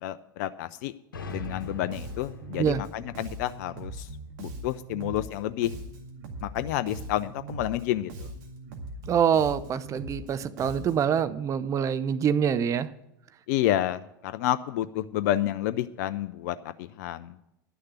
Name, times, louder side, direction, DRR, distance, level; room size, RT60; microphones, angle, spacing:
voice 1, 0.0-0.9 1.3-4.1 4.4-5.7 6.4-8.3 13.5-17.5, left 13 dB, 55° left, 14 dB, 0.4 m, -30 dB
sound 1, 1.1-4.8, left 4 dB, 75° left, 1.2 m, -43 dB
Bass guitar, 1.3-11.2, right 2 dB, 55° right, 2.0 m, -40 dB
voice 2, 9.1-12.9, right 8 dB, 30° right, 15 dB, 0.6 m, -25 dB
11.0 x 6.5 x 8.0 m, 0.84 s
figure-of-eight pair, 80°, 11 cm